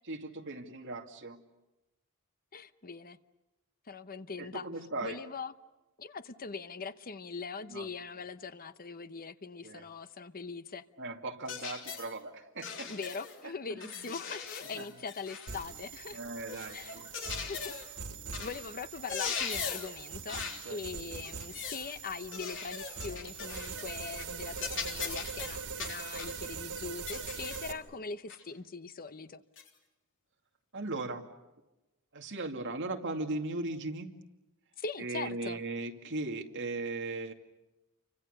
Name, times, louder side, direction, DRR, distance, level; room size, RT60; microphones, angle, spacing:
voice 1, 0.0-1.4 4.4-5.2 7.7-7.9 9.6-9.8 11.0-12.9 13.7-14.0 14.7-14.9 16.1-17.1 20.6-20.8 30.7-31.2 32.1-34.1 35.0-37.3, right 2 dB, 60° right, 2.4 m, -38 dB
voice 2, 2.5-3.2 3.9-4.7 5.0-5.5 6.0-10.8 12.9-16.2 16.7-17.0 17.5-17.7 18.4-29.4 34.8-35.6, left 4 dB, 40° left, 0.9 m, -41 dB
sound 1, 11.5-12.1 12.6-13.4 13.8-15.7 16.5-17.9 18.3-18.6 18.9-20.0 20.3-20.7 21.2-21.9 22.3-23.9 24.2-24.3 24.6-26.4 27.1-27.7 28.3-28.4 29.6-29.7, left 6 dB, 60° left, 3.5 m, -40 dB
sound 2, 15.5-27.7, right 5 dB, 80° right, 2.7 m, -43 dB
29.5 x 25.0 x 6.7 m
head